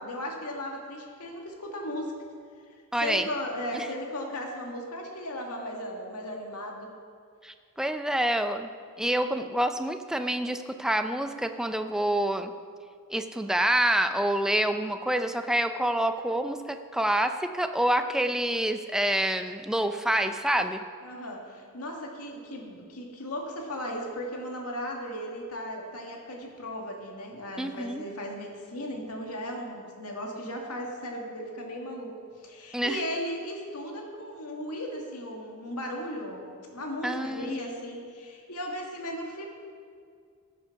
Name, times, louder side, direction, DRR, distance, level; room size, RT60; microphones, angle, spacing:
voice 1, 0.0-2.1 3.0-6.9 21.0-32.1 32.4-39.5, equal, 90° left, 1 dB, 2.0 m, -36 dB
voice 2, 2.9-3.3 3.7-3.9 7.4-8.7 9.0-12.5 13.1-20.8 27.6-28.1 32.7-33.0 37.0-37.6, right 1 dB, 5° right, 7 dB, 0.4 m, -27 dB
14.5 x 7.4 x 5.9 m, 2.2 s
head